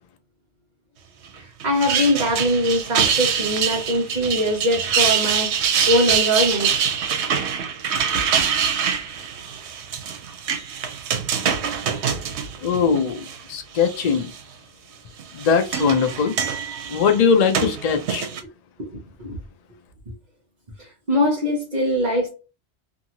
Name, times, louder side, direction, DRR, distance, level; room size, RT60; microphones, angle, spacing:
voice 1, 1.3-6.9 18.9-19.4 20.8-22.3, equal, 45° right, 0.9 m, -22 dB
sound 1, 1.6-13.4 13.8-14.4 15.2-18.4, right 7 dB, 90° right, 0.9 m, -24 dB
voice 2, 12.6-14.3 15.3-16.3 16.9-18.3, left 6 dB, 55° left, 0.5 m, -20 dB
2.7 x 2.6 x 2.8 m
omnidirectional pair, 1.1 m